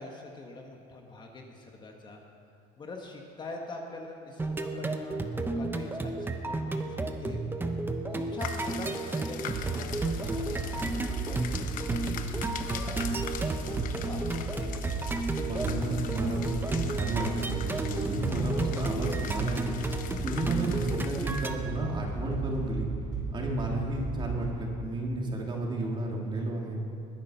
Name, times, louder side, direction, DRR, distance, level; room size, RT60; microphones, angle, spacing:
voice 1, 0.0-2.2 2.8-7.4 8.1-12.2 12.6-13.3 13.6-15.1, left 2 dB, 30° left, 1 dB, 1.6 m, -44 dB
sound 1, 4.4-21.5, right 2 dB, 15° right, 1.0 m, -33 dB
sound 2, 8.4-21.5, left 9 dB, 55° left, 1.0 m, -43 dB
sound 3, 9.5-24.5, right 4 dB, 55° right, 4.9 m, -35 dB
voice 2, 15.4-19.7 20.2-22.9 23.3-26.8, right 2 dB, 30° right, -1 dB, 3.0 m, -32 dB
20.5 x 10.5 x 5.8 m, 2.6 s
cardioid pair, 125°, 16 cm